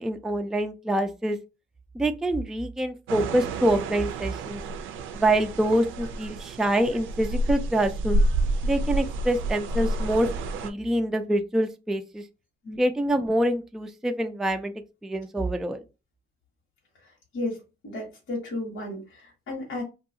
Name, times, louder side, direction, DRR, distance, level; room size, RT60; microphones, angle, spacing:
voice 1, 0.0-1.4 1.9-4.6 5.1-8.2 8.6-10.3 10.6-12.2 12.8-14.7 15.0-15.8, right 1 dB, ahead, 7 dB, 0.3 m, -25 dB
sound 1, 3.1-10.7, right 1 dB, 80° right, 0.4 m, -29 dB
voice 2, 17.0-19.8, left 2 dB, 75° left, -3 dB, 1.2 m, -34 dB
2.7 x 2.3 x 2.6 m, 0.28 s
cardioid pair, 90°, 20 cm